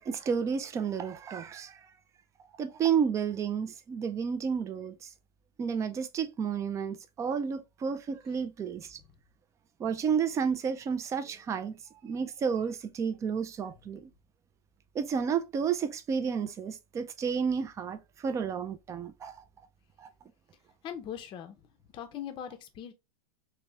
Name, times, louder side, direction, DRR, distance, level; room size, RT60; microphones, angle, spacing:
voice 1, 0.0-1.8 2.6-5.0 5.6-9.0 9.8-14.1 14.9-19.4 20.0-20.1, right 6 dB, 15° right, 0.4 m, -31 dB
voice 2, 20.8-21.6 21.9-22.9, left 9 dB, 25° left, 0.6 m, -40 dB
3.4 x 3.1 x 3.0 m
supercardioid pair, 140°, 20 cm